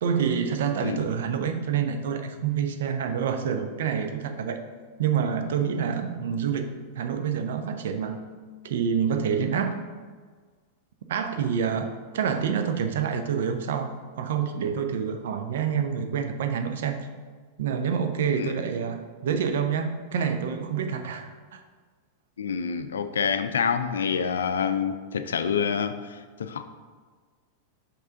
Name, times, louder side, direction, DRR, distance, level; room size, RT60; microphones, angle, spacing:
voice 1, 0.0-4.6 5.0-8.2 8.6-9.8 11.1-13.9 14.2-17.0 17.6-21.6, right 7 dB, 60° right, 7 dB, 0.5 m, -27 dB
voice 2, 22.4-26.6, left 6 dB, 65° left, 10 dB, 0.4 m, -27 dB
5.7 x 5.4 x 3.8 m, 1.5 s
figure-of-eight pair, 90°, 0 cm